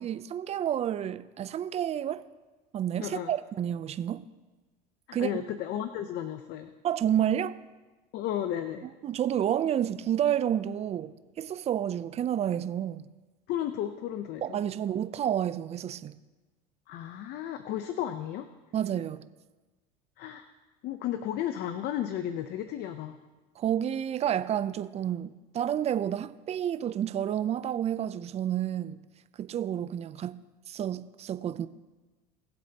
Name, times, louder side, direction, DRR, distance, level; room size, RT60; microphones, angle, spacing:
voice 1, 0.0-2.2 2.7-4.2 5.1-5.3 6.8-7.6 9.0-13.1 14.4-16.2 18.7-19.2 23.6-29.0 29.4-30.4 30.7-31.7, right 10 dB, 30° right, 0.5 m, -30 dB
voice 2, 3.0-3.3 5.1-6.7 8.1-8.9 13.5-14.6 16.9-18.5 20.2-20.5 20.8-23.2, left 11 dB, 55° left, 0.7 m, -33 dB
20.5 x 7.7 x 2.9 m
supercardioid pair, 105°, 21 cm